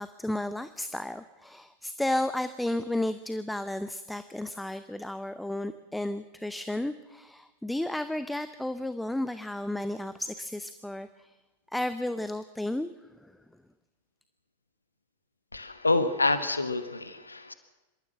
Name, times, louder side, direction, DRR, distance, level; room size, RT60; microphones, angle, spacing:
voice 1, 0.0-11.3 11.7-12.9 13.2-13.3, left 1 dB, 5° left, 12 dB, 0.7 m, -33 dB
voice 2, 15.5-17.5, left 3 dB, 80° left, 11 dB, 1.3 m, -27 dB
26.0 x 13.0 x 7.6 m, 1.1 s
figure-of-eight pair, 90°, 0 cm